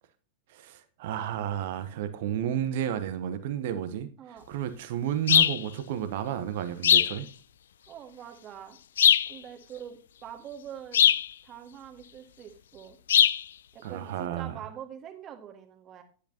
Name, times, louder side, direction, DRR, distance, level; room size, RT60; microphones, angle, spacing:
voice 1, 0.5-4.1 4.5-7.3 13.8-14.6, right 10 dB, 50° right, 1.0 m, -32 dB
sound 1, 5.3-5.6 6.8-7.2 9.0-9.3 10.9-11.3 13.1-13.4, left 9 dB, 65° left, 0.3 m, -20 dB
voice 2, 7.9-8.8 9.3-11.1 11.4-13.0 13.7-16.0, right 9 dB, 30° right, 1.8 m, -44 dB
10.5 x 8.3 x 2.8 m
figure-of-eight pair, 90°, 0 cm